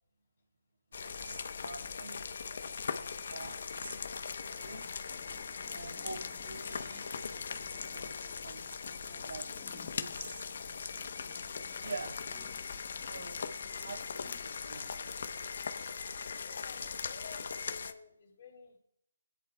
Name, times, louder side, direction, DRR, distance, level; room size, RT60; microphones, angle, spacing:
sound 1, 0.9-17.9, left 5 dB, 55° left, 0.8 m, -40 dB
voice 1, 0.9-2.2 2.5-4.9 5.7-10.5 11.8-12.6 13.0-13.4 13.8-15.1, right 3 dB, 70° right, 3 dB, 2.8 m, -47 dB
sound 2, 4.7-14.4, left 10 dB, 15° left, 0.5 m, -60 dB
voice 2, 16.4-18.8, left 5 dB, 40° left, -6 dB, 2.8 m, -52 dB
19.0 x 10.5 x 2.2 m, 0.69 s
hypercardioid pair, 160°, 0 cm